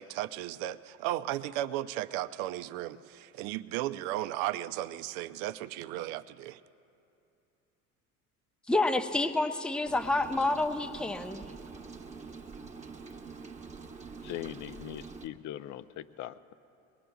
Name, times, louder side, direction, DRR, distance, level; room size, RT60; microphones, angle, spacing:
voice 1, 0.0-6.6, right 14 dB, 65° right, 11 dB, 0.6 m, -35 dB
voice 2, 8.7-11.5, left 2 dB, ahead, 8 dB, 0.6 m, -28 dB
Rain, 9.8-15.3, right 4 dB, 15° right, 1.1 m, -45 dB
voice 3, 14.2-16.5, left 12 dB, 40° left, 14 dB, 0.6 m, -41 dB
22.5 x 20.0 x 2.3 m, 2.7 s
hypercardioid pair, 70°, 44 cm